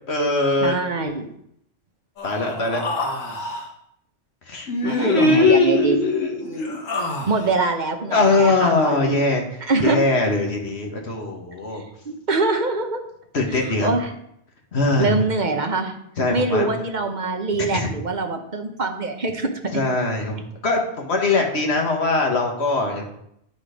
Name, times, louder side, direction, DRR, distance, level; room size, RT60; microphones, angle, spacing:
voice 1, 0.1-0.7 2.2-2.8 4.5-6.8 8.1-9.4 9.8-11.8 13.3-13.9 14.7-15.1 16.2-16.7 17.7-17.9 19.7-23.1, left 3 dB, 55° left, 1 dB, 1.7 m, -21 dB
voice 2, 0.6-1.3 4.8-6.0 7.3-9.2 9.6-10.0 12.1-13.0 13.5-14.2 15.0-16.0 16.3-19.5, right 3 dB, 40° right, 5 dB, 1.0 m, -24 dB
Human voice, 2.2-3.7 4.7-5.5 6.4-7.6, left 1 dB, 85° left, 1.8 m, -28 dB
10.5 x 4.3 x 5.1 m, 0.75 s
omnidirectional pair, 1.3 m